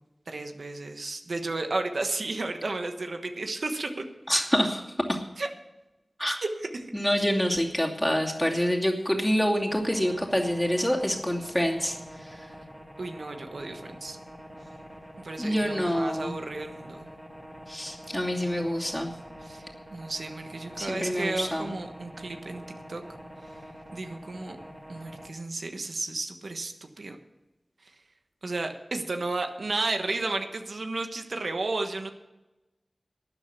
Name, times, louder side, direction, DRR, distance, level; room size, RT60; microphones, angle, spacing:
voice 1, 0.3-3.9 5.4-5.5 6.2-7.2 13.0-14.2 15.2-17.1 19.4-22.6 22.9-23.0 23.9-24.6 24.9-27.2 27.8-27.9 28.4-32.1, right 2 dB, 80° right, 5 dB, 1.2 m, -33 dB
voice 2, 4.3-5.2 6.2-6.4 6.9-12.4 15.4-16.3 17.7-19.1 20.8-21.7, equal, 10° left, 0 dB, 2.6 m, -27 dB
sound 1, 9.7-25.3, equal, 15° right, 2.2 m, -46 dB
13.0 x 9.0 x 6.8 m, 1.0 s
wide cardioid pair, 45°, 0 cm